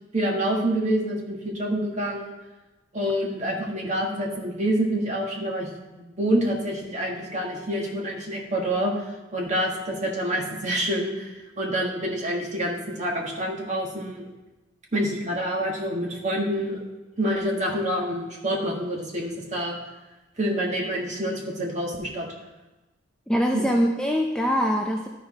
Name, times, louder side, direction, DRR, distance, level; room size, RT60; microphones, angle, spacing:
voice 1, 0.1-2.3 2.9-14.2 14.9-16.8 17.2-19.8 20.4-22.3 23.5-23.6, right 1 dB, 35° right, -1 dB, 1.6 m, -27 dB
voice 2, 23.3-25.1, equal, 5° left, 0 dB, 0.4 m, -23 dB
12.5 x 4.8 x 4.2 m, 1.1 s
head